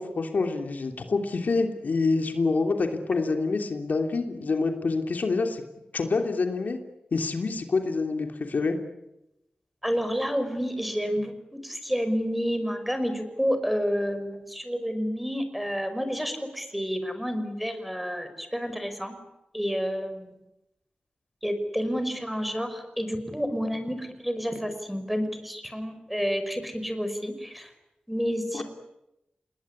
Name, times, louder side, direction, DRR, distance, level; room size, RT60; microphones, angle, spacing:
voice 1, 0.0-5.6 5.9-6.8 7.1-8.7 28.5-28.6, left 3 dB, 70° left, 5 dB, 3.1 m, -26 dB
voice 2, 9.8-19.2 19.5-20.3 21.4-27.7 28.1-28.6, equal, 5° right, 9 dB, 5.2 m, -29 dB
28.0 x 20.5 x 9.9 m, 0.90 s
wide cardioid pair, 75°, 3 cm